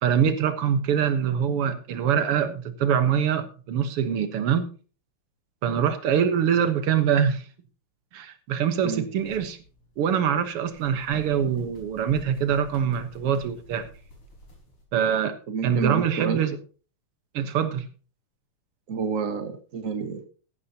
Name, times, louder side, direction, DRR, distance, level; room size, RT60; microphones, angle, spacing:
voice 1, 0.0-4.6 5.6-7.5 8.1-9.6 10.0-13.9 14.9-15.4 15.6-16.6 17.3-17.9, right 8 dB, 90° right, 10 dB, 2.2 m, -24 dB
sound 1, 9.1-14.8, left 1 dB, 80° left, 5.8 m, -50 dB
voice 2, 15.5-16.4 18.9-20.3, right 5 dB, 40° right, 7 dB, 1.8 m, -29 dB
14.5 x 12.0 x 2.9 m, 0.37 s
omnidirectional pair, 2.4 m